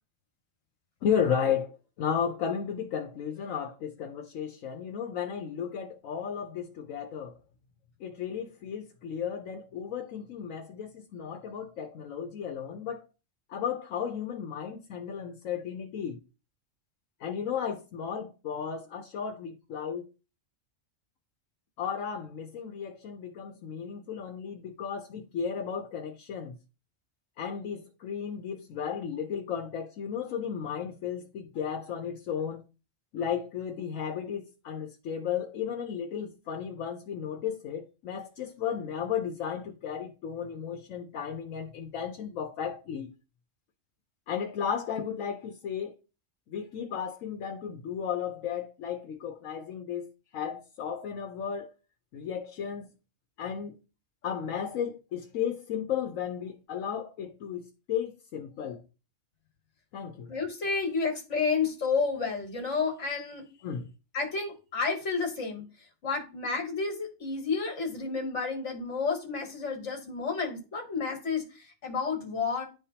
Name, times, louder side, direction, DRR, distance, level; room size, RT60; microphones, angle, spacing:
voice 1, 1.0-7.4 8.0-13.1 13.5-16.2 17.2-20.0 21.8-26.6 27.4-32.6 33.1-43.1 44.3-45.9 46.5-50.1 50.3-51.7 52.1-52.9 53.4-53.8 54.2-58.8 59.9-60.3 63.6-63.9, left 8 dB, 80° left, 1.1 m, -34 dB
voice 2, 60.3-63.5 64.1-65.6 66.0-72.6, left 4 dB, 65° left, 1.9 m, -31 dB
10.5 x 3.6 x 2.8 m
omnidirectional pair, 1.3 m